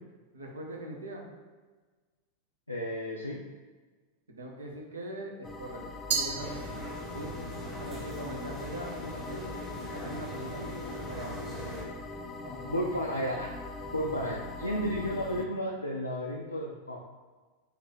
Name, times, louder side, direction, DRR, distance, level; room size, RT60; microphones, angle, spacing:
voice 1, 0.3-1.3 4.3-5.8 6.1-6.8 7.1-7.3 7.7-9.5 9.9-11.3 12.4-12.9, right 1 dB, 75° right, 0 dB, 0.8 m, -41 dB
voice 2, 2.7-3.4 7.8-8.2 12.7-13.5 13.9-17.0, equal, 85° left, -1 dB, 0.4 m, -33 dB
sound 1, 5.4-15.5, left 2 dB, 15° left, 0.4 m, -41 dB
Glass, 6.1-7.3, right 5 dB, 50° right, 0.5 m, -33 dB
sound 2, 6.4-11.8, left 1 dB, 5° right, 0.9 m, -42 dB
4.0 x 2.6 x 4.3 m, 1.3 s
figure-of-eight pair, 90°, 0 cm